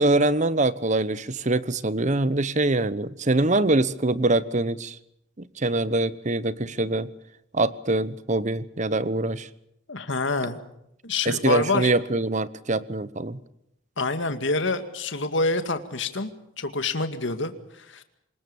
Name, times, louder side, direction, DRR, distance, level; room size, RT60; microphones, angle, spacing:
voice 1, 0.0-5.0 5.4-7.1 7.5-9.5 11.3-13.4, right 2 dB, 35° right, 16 dB, 0.9 m, -24 dB
voice 2, 9.9-10.6 11.0-11.9 14.0-16.3 16.6-18.0, left 3 dB, 60° left, 9 dB, 2.1 m, -27 dB
25.5 x 21.0 x 7.1 m, 0.77 s
head